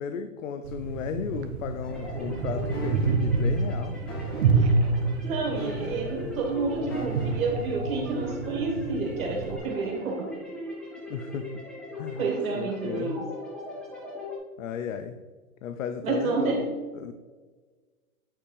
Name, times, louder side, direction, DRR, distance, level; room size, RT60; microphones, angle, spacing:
voice 1, 0.0-4.0 6.2-6.3 11.1-11.6 12.0-12.3 12.6-13.2 14.6-15.2 15.6-17.1, left 7 dB, 60° left, 9 dB, 0.6 m, -35 dB
sound 1, 0.6-9.6, right 4 dB, 45° right, 0.8 m, -28 dB
sound 2, 1.8-14.4, left 1 dB, ahead, 1.0 m, -40 dB
sound 3, 2.7-3.2 4.1-4.6 5.5-6.2 6.9-7.5 8.2-8.4, right 2 dB, 15° left, 0.4 m, -40 dB
voice 2, 5.2-10.4 12.2-13.3 16.0-16.6, right 3 dB, 65° right, 0 dB, 2.2 m, -29 dB
8.7 x 5.2 x 3.3 m, 1.4 s
hypercardioid pair, 160°, 45 cm